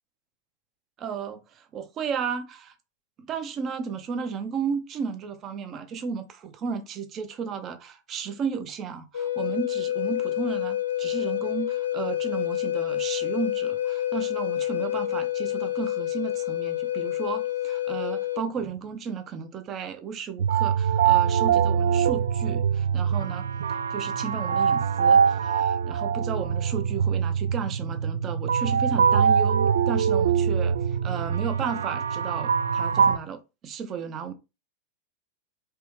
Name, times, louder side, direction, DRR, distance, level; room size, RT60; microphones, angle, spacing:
voice 1, 1.0-2.7 3.2-34.3, right 6 dB, 30° right, 0.7 m, -34 dB
Wind instrument woodwind instrument, 9.1-18.4, left 12 dB, 65° left, 0.5 m, -28 dB
sound 1, 20.4-33.2, right 7 dB, 65° right, 0.3 m, -23 dB
4.5 x 3.0 x 3.3 m
figure-of-eight pair, 90°, 0 cm